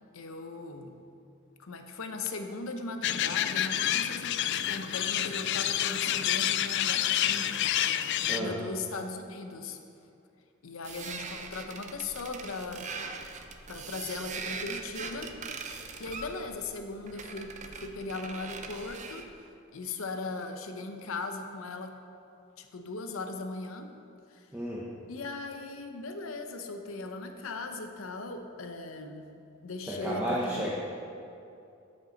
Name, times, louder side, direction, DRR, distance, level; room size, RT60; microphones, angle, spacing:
voice 1, 0.1-0.9 1.6-9.8 10.6-12.9 13.7-15.4 15.7-19.3 19.7-21.9 22.6-24.0 24.3-24.5 25.1-29.3 29.6-30.7, left 3 dB, 85° left, 6 dB, 0.7 m, -39 dB
sound 1, 3.0-8.4, left 11 dB, 60° left, 0.3 m, -28 dB
sound 2, 10.8-19.3, right 5 dB, 35° right, 0.5 m, -41 dB
voice 2, 24.5-24.9 29.8-30.7, right 1 dB, 10° right, -6 dB, 0.9 m, -32 dB
13.0 x 5.4 x 4.0 m, 2.6 s
head